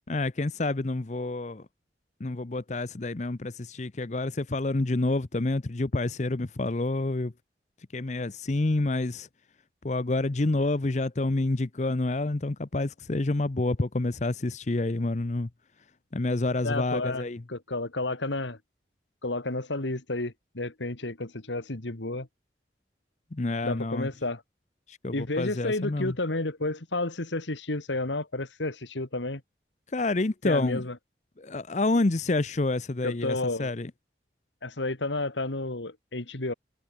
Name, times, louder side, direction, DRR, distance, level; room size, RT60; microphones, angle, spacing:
voice 1, 0.1-1.7 2.2-7.3 7.9-9.3 9.8-15.5 16.1-17.4 23.3-24.1 24.9-26.1 29.9-30.8 31.4-33.9, left 2 dB, 40° left, 0.7 m, -28 dB
voice 2, 16.6-18.6 19.2-22.3 23.6-24.4 25.1-29.4 30.4-31.0 33.0-33.7 34.6-36.5, left 2 dB, 90° left, 2.3 m, -31 dB
head